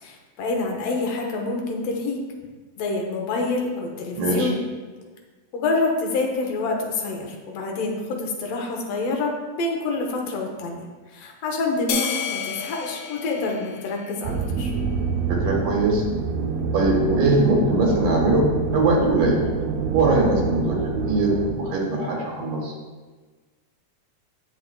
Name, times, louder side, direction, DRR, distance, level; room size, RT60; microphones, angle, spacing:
voice 1, 0.0-2.2 2.8-4.6 5.5-10.9 11.1-14.7, left 3 dB, 70° left, 1 dB, 1.9 m, -27 dB
voice 2, 4.1-4.5 15.3-16.0 16.7-19.4 19.9-20.8 21.1-22.7, right 2 dB, 65° right, -1 dB, 2.1 m, -21 dB
sound 1, 11.9-14.5, left 7 dB, 90° left, 2.1 m, -31 dB
sound 2, 14.2-21.5, right 4 dB, 80° right, 1.6 m, -27 dB
8.1 x 6.0 x 2.2 m, 1.3 s
omnidirectional pair, 3.3 m